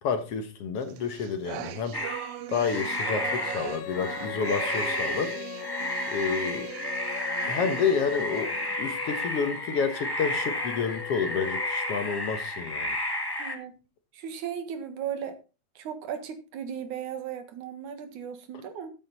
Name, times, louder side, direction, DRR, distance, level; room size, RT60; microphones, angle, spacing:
voice 1, 0.0-2.0 2.5-5.3 6.1-6.7 7.4-13.0, left 6 dB, 60° left, 2.0 m, -29 dB
sound 1, 0.9-8.8, right 10 dB, 70° right, 1.5 m, -39 dB
sound 2, 1.9-13.5, left 1 dB, 15° left, 1.0 m, -32 dB
Female singing, 3.2-12.4, left 19 dB, 90° left, 2.1 m, -41 dB
voice 2, 13.4-13.8 14.1-15.4 15.8-18.9, right 8 dB, 85° right, 3.1 m, -36 dB
14.0 x 8.5 x 4.1 m
omnidirectional pair, 3.3 m